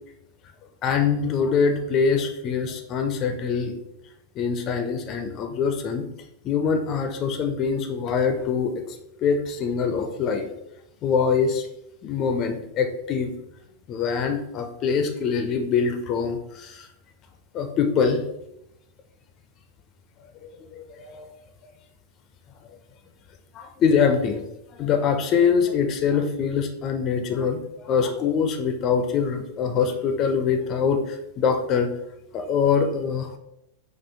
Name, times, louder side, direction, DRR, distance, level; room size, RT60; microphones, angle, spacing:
voice 1, 0.8-3.7 4.4-6.0 6.4-8.7 9.2-10.5 11.0-11.7 12.0-13.3 13.9-16.9 17.5-18.2 20.8-21.3 23.5-24.4 24.8-31.9 32.3-33.4, left 6 dB, 35° left, 5 dB, 0.4 m, -24 dB
4.3 x 2.4 x 3.3 m, 0.81 s
figure-of-eight pair, 90°, 0 cm